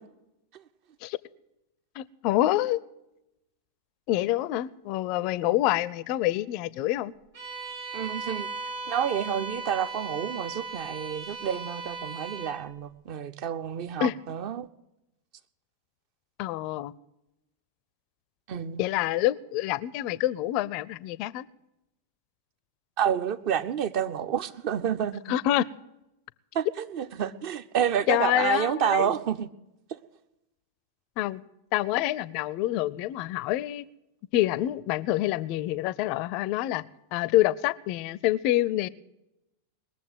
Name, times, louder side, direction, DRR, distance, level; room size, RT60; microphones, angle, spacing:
voice 1, 2.0-2.8 4.1-7.1 14.0-14.2 16.4-16.9 18.8-21.5 25.3-25.7 28.1-29.1 31.2-31.4 31.7-33.9 34.3-36.8 37.1-38.9, left 15 dB, 45° left, 0.4 m, -26 dB
Bowed string instrument, 7.3-12.6, right 4 dB, 60° right, 5.4 m, -37 dB
voice 2, 7.9-8.5 8.9-14.7 18.5-18.8 23.0-25.2 26.5-29.5 29.9-30.0, right 9 dB, 45° right, 0.7 m, -29 dB
20.5 x 7.3 x 7.9 m
figure-of-eight pair, 90°, 0 cm